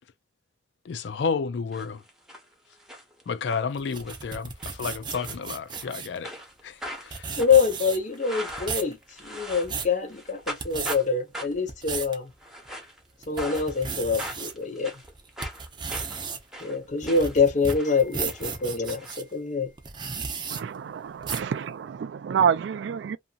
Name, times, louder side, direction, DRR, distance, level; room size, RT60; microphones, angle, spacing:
voice 1, 0.8-2.0 3.3-6.3 6.6-7.4, left 5 dB, 70° left, 0.4 m, -31 dB
sound 1, 1.7-2.4 2.7-3.6 4.0-4.3 4.6-4.8 5.1-5.9 6.2-9.8 10.1-11.1 11.3-11.7 12.3-13.0 13.4-13.9 14.2-17.4 17.7-19.1, equal, ahead, 0.9 m, -40 dB
sound 2, 3.8-6.2 6.8-6.9 7.1-8.2 8.5-8.9 9.4-9.9 10.5-11.0 11.5-12.2 12.7-12.8 13.2-14.5 15.0-19.2 19.8-20.6 21.2-21.5, right 5 dB, 25° right, 0.6 m, -34 dB
voice 2, 7.4-12.3 13.3-14.9 16.6-19.7, left 5 dB, 45° left, 0.7 m, -25 dB
voice 3, 20.5-23.2, right 7 dB, 75° right, 0.3 m, -27 dB
2.7 x 2.6 x 2.4 m
head